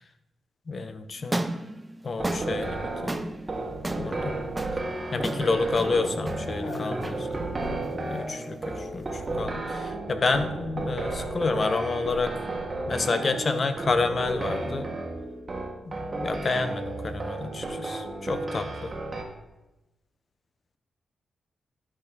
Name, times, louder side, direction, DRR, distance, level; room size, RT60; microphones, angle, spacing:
voice 1, 0.7-1.4 2.0-3.1 4.0-4.4 5.1-7.1 8.0-12.3 12.9-14.9 15.9-18.9, left 3 dB, 40° left, 10 dB, 0.8 m, -29 dB
sound 1, 1.2-9.5, right 1 dB, 15° right, 0.6 m, -36 dB
sound 2, 2.2-19.2, right 2 dB, 30° right, 1.7 m, -33 dB
voice 2, 6.5-7.4 7.7-8.1, left 2 dB, 80° left, -2 dB, 1.6 m, -39 dB
11.5 x 6.2 x 4.1 m, 1.0 s
cardioid pair, 90°, 0 cm